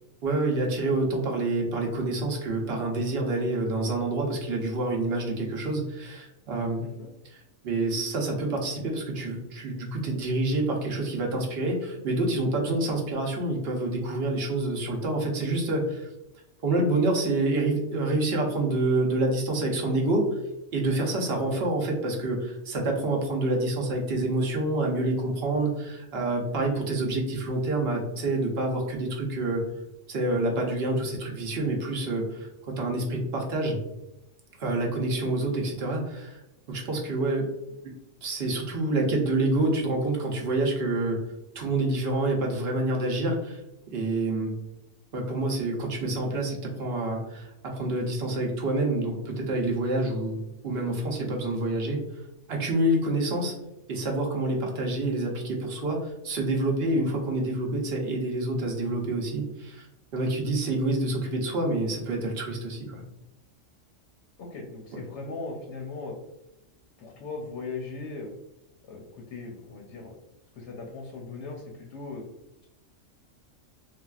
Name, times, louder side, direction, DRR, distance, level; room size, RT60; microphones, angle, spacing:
voice 1, 0.2-6.8 7.6-16.1 16.6-20.3 20.7-29.6 30.1-33.8 34.6-36.4 36.7-37.5 37.8-41.2 41.5-43.6 43.9-44.5 45.1-52.0 52.5-53.5 53.9-59.9 60.1-63.0 64.9-65.0, right 2 dB, 55° right, 0 dB, 0.8 m, -27 dB
voice 2, 35.0-35.3 60.7-61.4 64.4-66.2 67.0-68.3 68.8-70.1 70.5-72.2, left 3 dB, 70° left, 0 dB, 0.8 m, -39 dB
3.4 x 2.3 x 2.3 m, 0.92 s
omnidirectional pair, 1.4 m